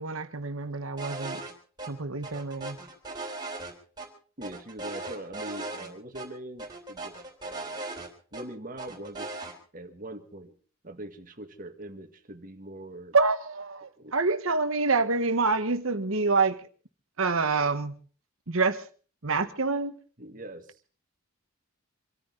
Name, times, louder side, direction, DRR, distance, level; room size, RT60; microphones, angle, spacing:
voice 1, 0.0-1.4 1.9-2.8 13.1-16.6 17.2-18.0 18.5-18.9 19.2-19.9, right 4 dB, 65° right, 1.4 m, -27 dB
sound 1, 1.0-1.5 1.8-1.9 2.2-4.1 4.4-5.9 6.1-6.3 6.6-8.4 8.8-9.5, right 2 dB, 20° right, 3.6 m, -38 dB
voice 2, 4.4-7.9 8.3-9.3 9.7-10.5 10.8-13.2 14.0-14.1 20.2-20.8, right 1 dB, 40° right, 1.8 m, -42 dB
26.0 x 14.0 x 4.0 m
head